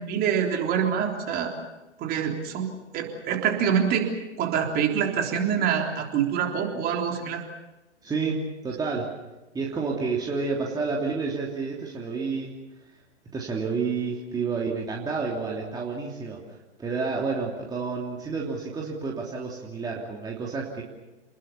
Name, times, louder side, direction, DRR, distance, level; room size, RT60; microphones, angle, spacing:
voice 1, 0.0-1.5 2.0-2.7 2.9-4.1 4.4-7.4, right 8 dB, 25° right, 2 dB, 3.7 m, -25 dB
voice 2, 8.0-9.1 9.5-12.6 13.3-16.4 16.8-20.8, right 4 dB, 10° right, -2 dB, 3.1 m, -30 dB
29.5 x 21.0 x 7.0 m, 1.1 s
figure-of-eight pair, 120°, 35 cm